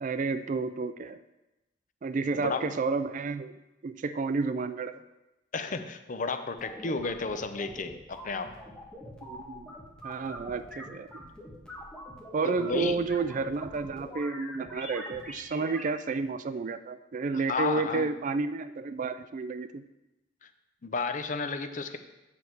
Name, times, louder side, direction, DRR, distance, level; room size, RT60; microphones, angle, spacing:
voice 1, 0.0-1.2 2.0-3.5 3.8-5.0 9.2-9.7 10.0-11.2 12.3-19.8, right 4 dB, 40° right, 12 dB, 0.3 m, -31 dB
voice 2, 2.3-2.7 5.5-8.5 12.4-13.0 17.5-18.1 20.4-20.5 20.8-22.0, left 4 dB, 40° left, 9 dB, 0.6 m, -32 dB
sound 1, 6.6-15.8, equal, 5° left, 1.4 m, -44 dB
8.5 x 6.8 x 4.6 m, 0.99 s
head